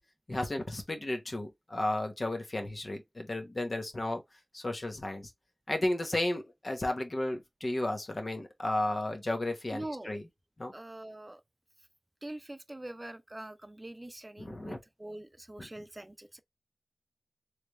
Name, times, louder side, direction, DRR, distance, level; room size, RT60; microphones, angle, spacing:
voice 1, 0.3-4.2 4.5-5.3 5.7-10.2 10.6-10.7 14.4-14.8 15.6-15.7, left 1 dB, 65° left, 1.0 m, -33 dB
voice 2, 9.7-10.2 10.7-11.4 12.2-16.4, right 1 dB, 35° right, 0.5 m, -44 dB
3.3 x 3.2 x 3.1 m
wide cardioid pair, 50°, 0 cm